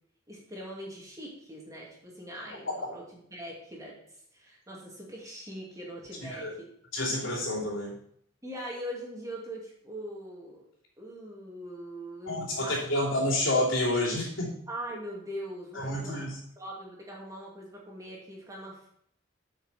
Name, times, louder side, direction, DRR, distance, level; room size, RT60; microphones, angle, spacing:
voice 1, 0.3-3.9 4.3-6.7 8.4-10.6 11.0-13.1 14.7-16.2 16.6-18.9, right 1 dB, 15° right, -4 dB, 2.4 m, -41 dB
voice 2, 6.2-6.5 6.9-8.0 12.3-14.5 15.7-16.4, left 1 dB, 85° left, -4 dB, 2.9 m, -29 dB
8.3 x 6.0 x 4.2 m, 0.67 s
head